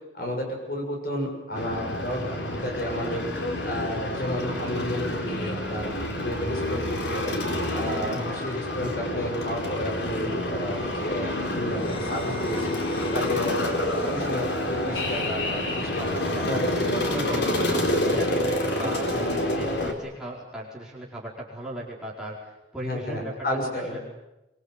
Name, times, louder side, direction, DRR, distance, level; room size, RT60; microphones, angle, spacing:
voice 1, 0.1-3.3 3.6-6.0 6.2-7.4 7.7-12.7 13.1-13.7 14.1-16.1 16.5-17.4 17.7-17.8 18.1-18.2 18.8-19.2 22.8-24.0, left 1 dB, 55° left, 1 dB, 7.1 m, -32 dB
sound 1, 1.5-19.9, left 1 dB, 80° left, 3.9 m, -28 dB
voice 2, 2.9-3.4 8.1-8.4 13.2-13.5 16.0-23.4 23.6-24.0, right 1 dB, 5° right, -5 dB, 4.9 m, -38 dB
sound 2, 11.7-18.3, left 2 dB, 30° left, 1.9 m, -45 dB
24.5 x 24.0 x 8.3 m, 0.97 s
head